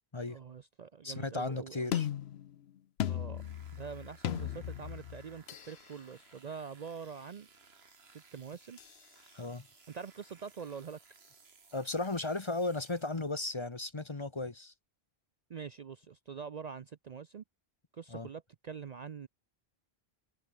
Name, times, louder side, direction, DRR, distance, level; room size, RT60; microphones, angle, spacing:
voice 1, 0.3-2.0 3.1-3.4 3.7-7.5 8.1-8.8 9.9-11.0 15.5-17.4 17.9-19.3, right 6 dB, 50° right, 0.6 m, -45 dB
voice 2, 1.0-2.1 9.3-9.7 11.7-14.7 18.1-18.3, left 2 dB, 30° left, 1.0 m, -35 dB
sound 1, 1.9-5.8 8.8-9.0, left 10 dB, 80° left, 0.9 m, -37 dB
sound 2, 3.3-13.5, right 4 dB, 75° right, 2.2 m, -61 dB
omnidirectional pair, 1.1 m